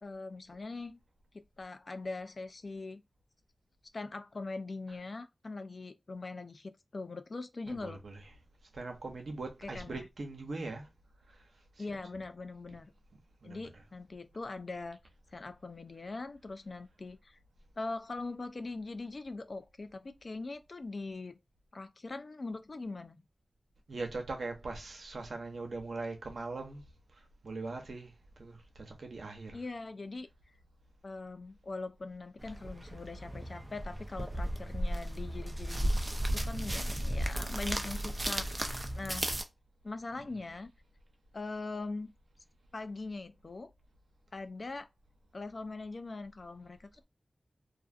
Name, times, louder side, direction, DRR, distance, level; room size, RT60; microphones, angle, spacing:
voice 1, 0.0-1.0 1.6-3.0 3.9-8.0 9.6-10.1 11.8-12.9 13.4-15.0 15.3-17.4 17.8-21.4 21.7-23.2 29.5-30.3 31.0-35.9 36.3-39.3 39.8-40.7 41.3-42.1 42.7-43.7 44.3-44.9 45.3-47.0, left 3 dB, 65° left, 0.4 m, -41 dB
voice 2, 7.7-8.4 8.7-10.9 11.3-11.5 11.8-12.0 13.4-13.8 23.9-26.8 27.1-29.7 40.1-40.4, right 3 dB, 85° right, 0.7 m, -41 dB
sound 1, 32.4-39.4, right 1 dB, 30° right, 0.5 m, -34 dB
2.4 x 2.4 x 2.4 m
cardioid pair, 45°, 0 cm